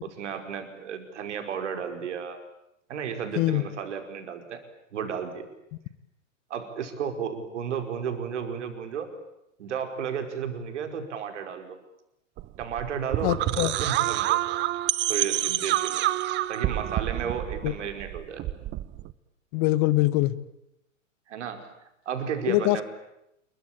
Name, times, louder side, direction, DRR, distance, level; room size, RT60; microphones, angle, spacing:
voice 1, 0.0-2.4 2.9-4.6 4.9-5.5 6.5-9.1 9.6-11.8 12.6-14.4 15.1-16.1 16.5-18.4 21.3-21.6 22.1-22.8, right 7 dB, 65° right, 7 dB, 5.2 m, -33 dB
sound 1, 12.4-19.1, right 15 dB, 30° right, 1.1 m, -27 dB
voice 2, 13.2-13.8 17.6-17.7 19.5-20.3 22.5-22.8, left 18 dB, 40° left, 17 dB, 1.5 m, -23 dB
28.0 x 23.0 x 9.0 m, 0.82 s
figure-of-eight pair, 100°, 39 cm